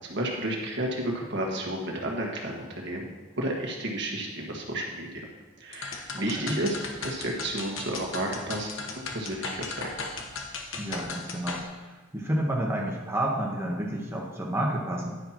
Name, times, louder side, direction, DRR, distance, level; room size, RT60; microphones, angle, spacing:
voice 1, 0.1-5.2 5.6-9.9, right 1 dB, 60° right, 0 dB, 1.6 m, -32 dB
sound 1, 5.7-11.6, left 4 dB, 70° left, 1.2 m, -36 dB
voice 2, 10.8-15.2, right 1 dB, 10° right, -2 dB, 1.1 m, -30 dB
10.5 x 9.9 x 3.0 m, 1.3 s
head